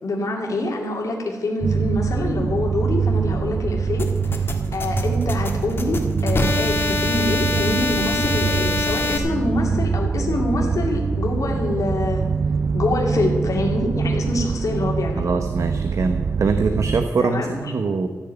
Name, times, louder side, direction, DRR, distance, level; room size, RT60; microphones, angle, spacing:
voice 1, 0.0-4.5 4.7-12.2 12.7-15.3 17.2-17.7, left 2 dB, 70° left, 0 dB, 2.6 m, -25 dB
sound 1, 1.6-17.1, right 5 dB, 45° right, 0.4 m, -24 dB
sound 2, 4.0-9.2, left 3 dB, 40° left, 1.6 m, -25 dB
voice 2, 15.2-18.1, right 4 dB, 60° right, 7 dB, 0.9 m, -23 dB
14.5 x 6.9 x 9.0 m, 1.4 s
wide cardioid pair, 135°, 6 cm